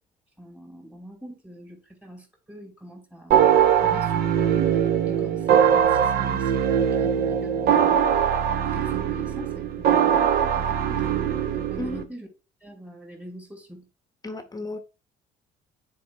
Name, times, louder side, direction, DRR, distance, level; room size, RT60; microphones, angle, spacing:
voice 1, 0.4-3.5 3.8-8.1 8.6-12.3 12.6-13.9, equal, 5° right, 2.6 m, -44 dB
sound 1, 3.3-12.0, right 9 dB, 65° right, 0.8 m, -21 dB
voice 2, 14.2-14.8, left 2 dB, 20° left, 0.8 m, -33 dB
9.3 x 4.6 x 2.3 m
cardioid pair, 110°, 17 cm